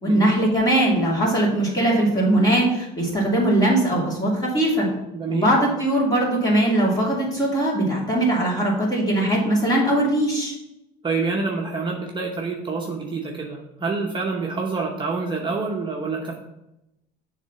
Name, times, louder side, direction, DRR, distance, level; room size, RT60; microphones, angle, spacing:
voice 1, 0.0-4.9 5.3-10.5, right 1 dB, 20° left, -4 dB, 2.7 m, -20 dB
voice 2, 5.1-5.5 11.0-16.3, right 4 dB, 25° right, -1 dB, 0.9 m, -27 dB
7.0 x 3.3 x 5.6 m, 0.88 s
supercardioid pair, 105°, 18 cm